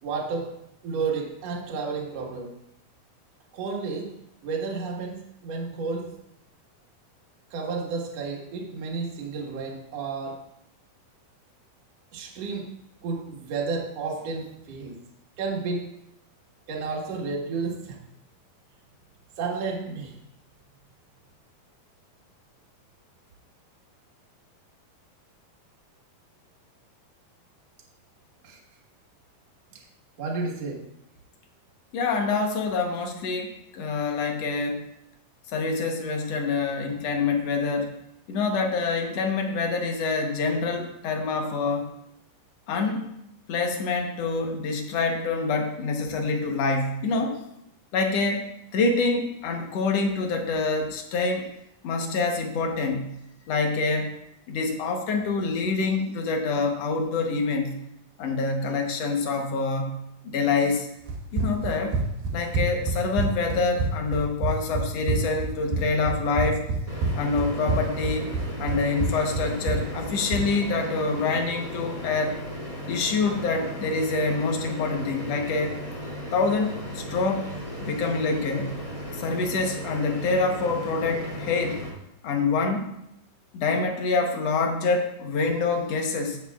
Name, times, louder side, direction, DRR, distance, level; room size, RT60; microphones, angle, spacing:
voice 1, 0.0-0.5 0.8-2.6 3.5-6.1 7.5-10.4 12.1-12.7 13.0-15.0 15.4-15.9 16.7-18.0 19.4-20.1 28.4-28.6 30.2-30.9, right 4 dB, 55° right, -1 dB, 2.4 m, -31 dB
voice 2, 31.9-34.9 35.5-37.9 38.3-41.9 42.7-43.1 43.5-47.4 47.9-51.5 51.8-53.2 53.5-54.2 54.5-57.8 58.2-60.9 61.3-62.0 62.3-66.6 67.1-68.3 68.6-72.4 72.9-75.8 76.3-77.5 77.8-78.8 79.1-81.8 82.2-82.9 83.5-86.4, left 4 dB, 65° left, 3 dB, 1.8 m, -26 dB
Run, 61.1-70.5, right 3 dB, 80° right, 3.1 m, -28 dB
sound 1, 66.9-81.9, equal, 10° left, 2.8 m, -36 dB
15.0 x 8.1 x 2.4 m, 0.79 s
omnidirectional pair, 4.1 m